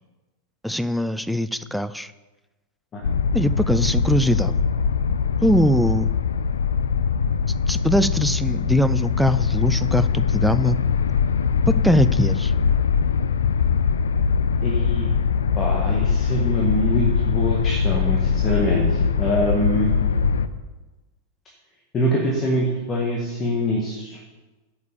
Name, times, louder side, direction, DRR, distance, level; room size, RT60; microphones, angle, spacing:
voice 1, 0.6-2.1 3.3-4.6 5.4-6.1 7.7-10.8 11.8-12.5, equal, ahead, 14 dB, 0.4 m, -21 dB
sound 1, 3.0-20.5, left 6 dB, 65° left, 0.5 m, -22 dB
voice 2, 14.6-15.1 15.6-19.9 21.9-24.2, equal, 25° left, -2 dB, 1.8 m, -24 dB
8.3 x 6.5 x 7.0 m, 1.2 s
figure-of-eight pair, 90°, 0 cm